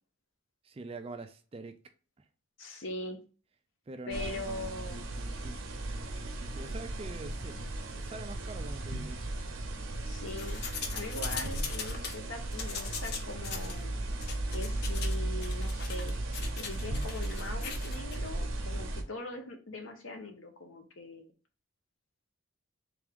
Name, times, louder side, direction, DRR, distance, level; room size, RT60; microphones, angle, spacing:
voice 1, 0.6-1.8 2.2-2.3 3.9-5.6 6.2-7.7 7.9-9.2, right 3 dB, 30° right, 0.3 m, -45 dB
voice 2, 2.6-3.2 4.1-5.0 10.1-10.6 10.9-14.0 14.5-16.1 16.6-21.3, left 2 dB, 75° left, 0.9 m, -41 dB
sound 1, 4.1-19.0, right 1 dB, 70° right, 0.7 m, -36 dB
sound 2, 10.3-12.2 12.5-13.8 14.2-15.2 15.4-18.2, left 6 dB, 50° left, 0.6 m, -40 dB
3.5 x 3.5 x 3.4 m
head